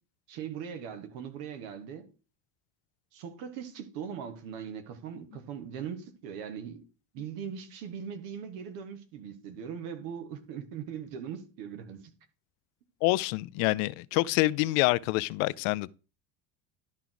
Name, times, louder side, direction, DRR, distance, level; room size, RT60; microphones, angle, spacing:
voice 1, 0.3-2.0 3.1-6.8 7.1-12.1, right 8 dB, 85° right, 1.7 m, -40 dB
voice 2, 13.0-15.9, left 20 dB, 80° left, 0.6 m, -26 dB
11.5 x 4.6 x 3.9 m
cardioid pair, 115°, 48 cm